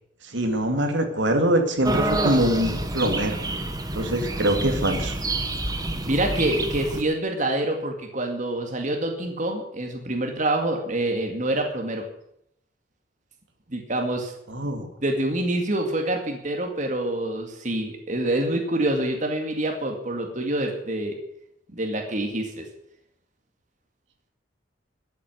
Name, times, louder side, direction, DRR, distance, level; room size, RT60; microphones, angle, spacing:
voice 1, 0.2-3.4 3.9-5.2 14.5-14.9, right 1 dB, 75° right, 5 dB, 2.4 m, -23 dB
sound 1, 1.8-7.0, right 2 dB, 20° right, 1.3 m, -28 dB
voice 2, 6.1-12.0 13.7-14.3 15.0-21.2 21.7-22.6, right 1 dB, 40° right, 3 dB, 2.2 m, -26 dB
14.0 x 8.4 x 9.4 m, 0.76 s
head